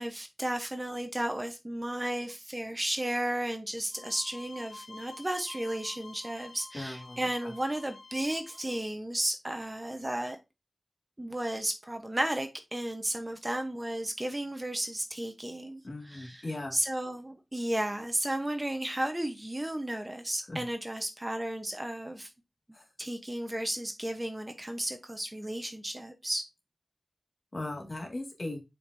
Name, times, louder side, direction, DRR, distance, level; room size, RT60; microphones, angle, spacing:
voice 1, 0.0-10.4 11.2-15.8 16.1-16.4 16.7-22.3 23.0-26.4, right 1 dB, 20° right, 0.9 m, -33 dB
sound 1, 3.9-8.8, left 3 dB, 80° left, 1.2 m, -49 dB
voice 2, 6.7-7.5 15.8-16.7 20.5-20.6 22.7-22.9 27.5-28.6, left 2 dB, 40° left, 2.0 m, -38 dB
7.7 x 5.2 x 2.7 m
wide cardioid pair, 95°, 0 cm